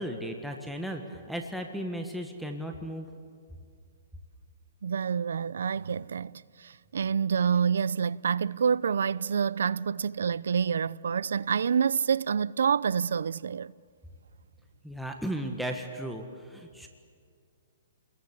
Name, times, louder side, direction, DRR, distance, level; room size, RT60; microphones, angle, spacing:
voice 1, 0.0-3.1 14.8-16.9, equal, ahead, 1.5 m, -35 dB
voice 2, 4.8-13.7, right 7 dB, 80° right, 0.6 m, -27 dB
29.5 x 21.5 x 8.3 m
hypercardioid pair, 160°, 0 cm